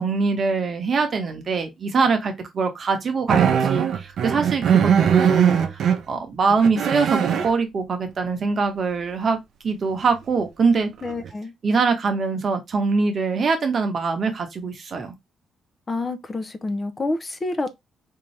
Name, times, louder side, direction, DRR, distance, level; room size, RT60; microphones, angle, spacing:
voice 1, 0.0-9.4 9.6-10.9 11.6-15.1, right 4 dB, 45° right, 1.0 m, -23 dB
sound 1, 3.3-6.0 6.5-7.5 10.4-10.5 11.0-11.3, right 8 dB, 65° right, 0.6 m, -20 dB
voice 2, 11.0-11.5 15.9-17.7, left 2 dB, 30° left, 0.6 m, -28 dB
3.6 x 2.8 x 3.2 m
cardioid pair, 90°, 0 cm